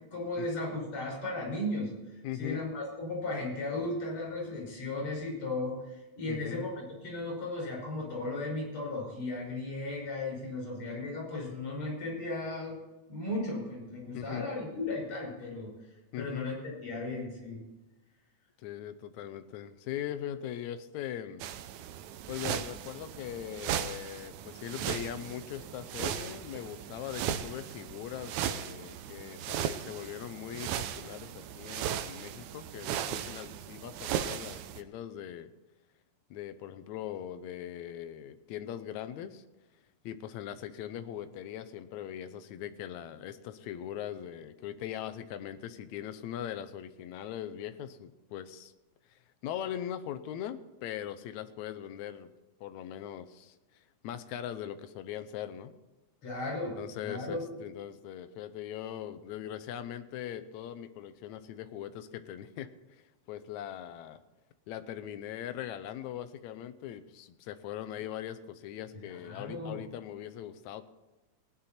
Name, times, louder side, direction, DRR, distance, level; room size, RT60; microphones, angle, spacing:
voice 1, 0.1-1.9 2.4-12.8 13.1-15.7 16.2-17.6 56.2-57.4 68.9-69.8, left 2 dB, 50° left, -2 dB, 6.6 m, -36 dB
voice 2, 2.2-2.7 6.3-6.7 14.1-14.5 16.1-16.5 18.6-21.5 22.3-35.5 36.3-39.4 40.0-48.7 49.1-52.3 52.6-55.8 56.8-64.2 64.7-70.9, left 10 dB, 80° left, 10 dB, 2.1 m, -40 dB
sound 1, 21.4-34.8, right 10 dB, 85° right, 2.1 m, -37 dB
18.5 x 9.8 x 4.3 m, 1.1 s
omnidirectional pair, 3.3 m